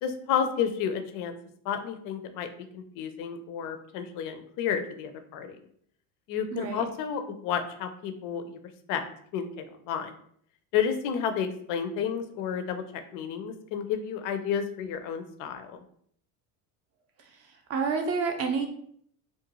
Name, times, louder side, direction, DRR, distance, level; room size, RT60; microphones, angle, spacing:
voice 1, 0.0-1.3 1.7-2.5 2.7-5.6 6.3-8.6 8.9-9.0 9.3-10.1 10.7-15.8, left 8 dB, 45° left, 8 dB, 0.4 m, -31 dB
voice 2, 6.5-6.8 17.7-18.7, right 5 dB, 30° right, 4 dB, 0.5 m, -28 dB
2.4 x 2.2 x 2.9 m, 0.64 s
supercardioid pair, 105°, 47 cm